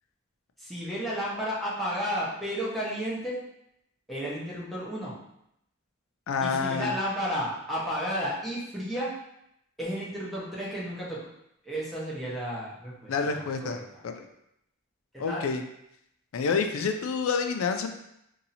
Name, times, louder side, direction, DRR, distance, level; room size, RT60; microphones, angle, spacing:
voice 1, 0.6-3.4 4.1-5.2 6.4-9.2 9.8-11.3 11.6-14.0 15.1-15.5, equal, ahead, -8 dB, 0.9 m, -32 dB
voice 2, 6.3-6.9 13.1-14.3 15.2-15.6 16.3-17.9, left 5 dB, 75° left, 6 dB, 0.4 m, -28 dB
2.7 x 2.7 x 4.0 m, 0.79 s
head